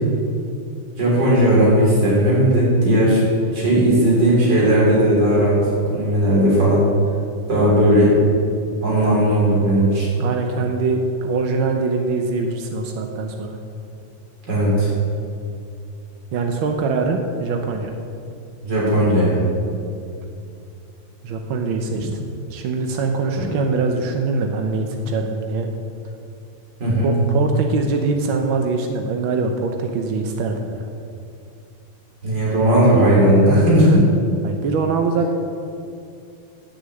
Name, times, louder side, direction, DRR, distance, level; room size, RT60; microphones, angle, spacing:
voice 1, 1.0-3.2 3.5-6.8 7.5-8.1 8.8-10.1 14.5-14.9 18.6-19.4 23.4-23.5 26.8-27.1 32.2-34.0, right 1 dB, 65° right, -6 dB, 4.1 m, -16 dB
voice 2, 10.2-13.6 16.3-17.9 21.2-22.1 22.5-25.7 27.0-30.9 33.5-34.1 34.4-35.3, right 4 dB, 90° right, 4 dB, 1.7 m, -23 dB
11.0 x 6.5 x 7.8 m, 2.5 s
omnidirectional pair, 2.1 m